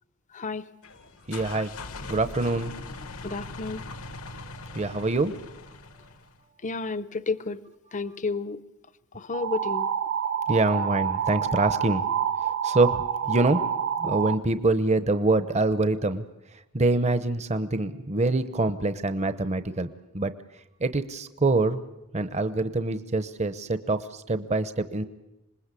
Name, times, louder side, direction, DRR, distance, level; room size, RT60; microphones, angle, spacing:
voice 1, 0.3-0.6 3.2-3.8 6.6-7.6 7.9-8.6 9.1-9.9, left 3 dB, 35° left, 15 dB, 0.8 m, -31 dB
sound 1, 0.8-6.4, left 3 dB, 65° left, 1.2 m, -41 dB
voice 2, 1.3-1.7 2.1-2.7 4.7-5.4 10.5-12.1 12.4-13.7 14.0-16.2 16.7-19.9 20.1-20.3 20.8-21.8 22.1-25.0, right 2 dB, 30° right, 11 dB, 0.9 m, -25 dB
sound 2, 9.3-14.4, right 8 dB, 60° right, 1.2 m, -28 dB
26.5 x 20.5 x 8.4 m, 0.93 s
head